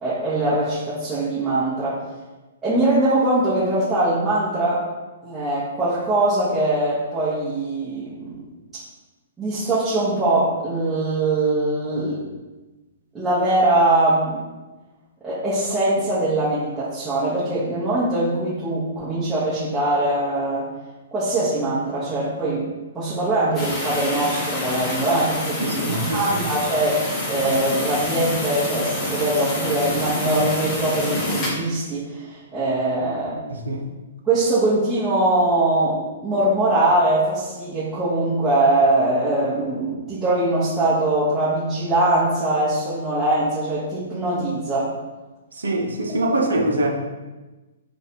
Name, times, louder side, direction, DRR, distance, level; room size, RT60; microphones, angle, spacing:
voice 1, 0.0-2.0 2.6-4.8 5.2-8.4 9.4-12.2 13.1-14.4 15.2-20.7 21.1-22.6 22.9-33.4 34.2-44.9, right 2 dB, 10° right, -12 dB, 1.1 m, -22 dB
sound 1, 23.5-31.5, left 1 dB, 20° left, 0.9 m, -27 dB
voice 2, 25.6-26.2 33.5-33.9 45.6-46.9, right 1 dB, 65° right, 1 dB, 0.6 m, -23 dB
3.1 x 2.5 x 4.3 m, 1.2 s
figure-of-eight pair, 115°, 0 cm